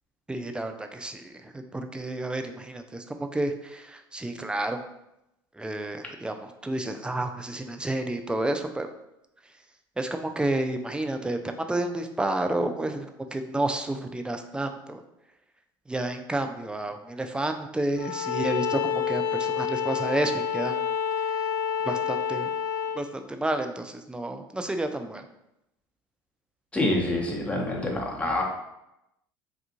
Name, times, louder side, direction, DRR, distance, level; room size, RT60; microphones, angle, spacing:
voice 1, 0.3-4.8 5.6-8.9 10.0-13.1 13.3-15.0 15.9-20.8 21.9-22.5 23.0-25.2, right 1 dB, 10° right, 6 dB, 0.4 m, -30 dB
Bowed string instrument, 18.0-23.0, left 7 dB, 75° left, 0.4 m, -28 dB
voice 2, 26.7-28.4, left 1 dB, 10° left, -2 dB, 0.9 m, -26 dB
3.5 x 2.4 x 2.9 m, 0.86 s
hypercardioid pair, 75°, 12 cm